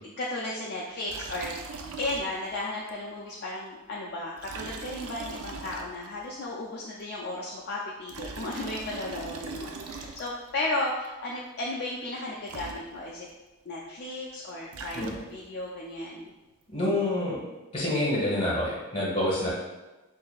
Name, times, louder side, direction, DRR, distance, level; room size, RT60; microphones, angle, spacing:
voice 1, 0.2-1.5 2.0-13.3 13.7-16.3, left 2 dB, 45° left, -4 dB, 0.4 m, -34 dB
Liquid, 1.1-2.6 2.9-3.0 4.4-6.3 7.9-10.6 12.2-12.3 12.5-13.3 14.5-15.6, right 4 dB, 85° right, 0.4 m, -41 dB
voice 2, 16.7-17.4 17.7-19.5, left 1 dB, 25° left, -6 dB, 1.2 m, -27 dB
5.7 x 2.6 x 2.3 m, 1.1 s
head